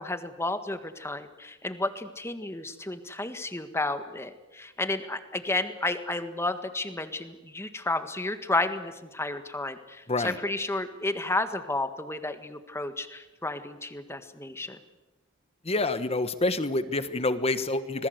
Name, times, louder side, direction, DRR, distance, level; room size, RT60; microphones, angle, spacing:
voice 1, 0.0-14.8, left 2 dB, 10° left, 9 dB, 1.6 m, -32 dB
voice 2, 10.1-10.4 15.6-18.1, left 2 dB, 30° left, 11 dB, 1.3 m, -27 dB
26.5 x 20.0 x 8.0 m, 1.1 s
head